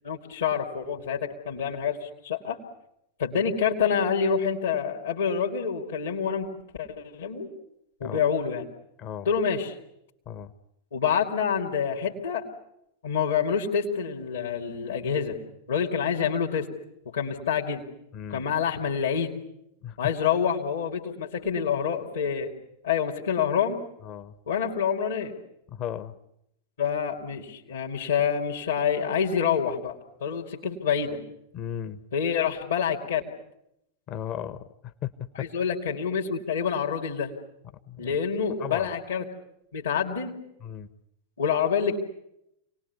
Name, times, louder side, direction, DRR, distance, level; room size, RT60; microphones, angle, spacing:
voice 1, 0.0-2.6 3.2-6.5 6.8-7.5 8.0-8.6 9.2-9.8 10.9-12.4 13.0-15.4 15.7-16.7 17.1-17.8 18.3-19.3 20.0-22.5 22.8-23.8 24.5-25.3 26.8-30.0 30.2-31.2 32.1-33.2 35.3-37.3 38.0-39.2 39.7-40.4 41.4-42.0, left 7 dB, 65° left, -1 dB, 2.7 m, -27 dB
voice 2, 18.1-18.4 19.8-20.0 24.0-24.3 25.7-26.2 31.5-32.0 34.1-35.5 37.9-38.1 38.6-38.9 40.6-40.9, left 10 dB, 35° left, 10 dB, 1.2 m, -36 dB
28.0 x 19.5 x 9.7 m, 0.82 s
figure-of-eight pair, 90°, 0 cm